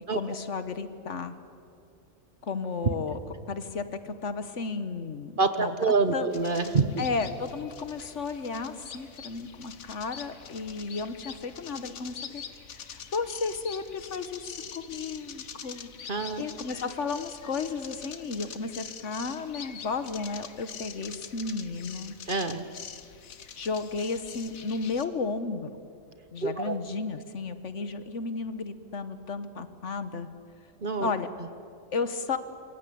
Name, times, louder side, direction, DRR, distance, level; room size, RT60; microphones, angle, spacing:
voice 1, 0.1-1.4 2.4-3.2 3.5-5.7 6.1-6.3 7.0-12.4 12.7-22.2 23.6-25.7 26.3-30.3 31.0-31.3 31.9-32.4, left 4 dB, 60° left, 11 dB, 1.5 m, -33 dB
voice 2, 5.4-7.0 16.1-16.4 22.3-22.7 26.4-26.8 30.8-31.1, right 4 dB, 40° right, 10 dB, 1.2 m, -26 dB
sound 1, 6.3-25.0, left 7 dB, 80° left, 1.6 m, -44 dB
26.5 x 23.0 x 8.5 m, 2.4 s
omnidirectional pair, 1.4 m